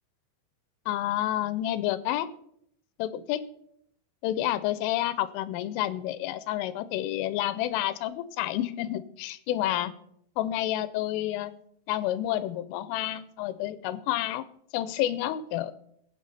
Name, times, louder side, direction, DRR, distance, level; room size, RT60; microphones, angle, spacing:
voice 1, 0.9-2.3 3.0-3.4 4.2-9.9 10.4-11.5 11.9-14.5 14.7-15.7, left 13 dB, 85° left, 14 dB, 3.3 m, -29 dB
19.5 x 9.0 x 4.2 m, 0.71 s
omnidirectional pair, 5.7 m